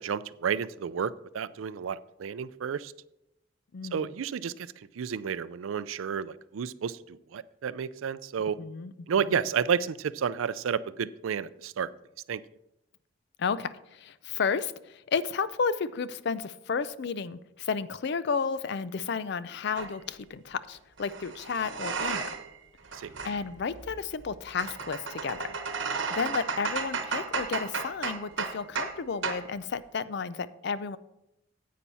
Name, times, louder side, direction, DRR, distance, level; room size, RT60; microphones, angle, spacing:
voice 1, 0.0-2.9 3.9-4.5 5.0-8.6 9.1-11.9 12.3-12.4 23.0-23.1, right 7 dB, 85° right, 17 dB, 0.4 m, -31 dB
voice 2, 3.7-4.1 8.6-9.4 13.4-22.3 23.2-25.6 26.1-31.0, left 5 dB, 60° left, 15 dB, 0.4 m, -32 dB
sound 1, 19.8-19.9 21.0-22.6 22.8-29.0 29.2-29.5, right 5 dB, 65° right, 1.0 m, -34 dB
10.0 x 8.4 x 4.1 m, 0.86 s
head